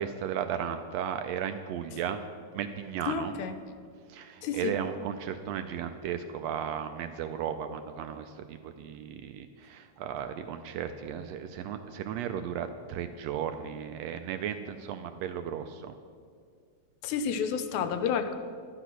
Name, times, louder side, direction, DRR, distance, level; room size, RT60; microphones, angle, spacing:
voice 1, 0.0-2.2 2.5-3.3 4.1-15.9, right 8 dB, 80° right, 8 dB, 1.6 m, -35 dB
voice 2, 3.1-3.6 4.4-4.8 17.0-18.3, left 6 dB, 80° left, 9 dB, 2.1 m, -30 dB
12.0 x 9.9 x 6.1 m, 2.1 s
omnidirectional pair, 3.3 m